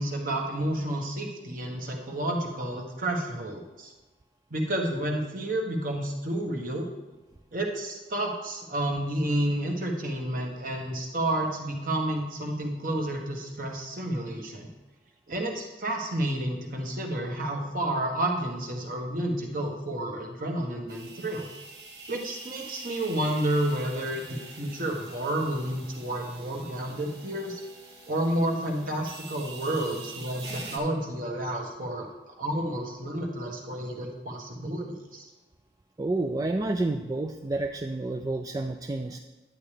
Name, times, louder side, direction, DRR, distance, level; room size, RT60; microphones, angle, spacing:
voice 1, 0.0-3.9 4.5-6.9 7.5-14.7 15.3-21.5 22.1-27.6 28.1-32.1 32.4-35.3, right 1 dB, 50° right, 1 dB, 1.3 m, -30 dB
sound 1, 20.9-30.8, right 3 dB, 70° right, 1.4 m, -45 dB
voice 2, 36.0-39.2, right 2 dB, 20° right, 4 dB, 0.3 m, -29 dB
10.5 x 8.7 x 3.3 m, 1.1 s
head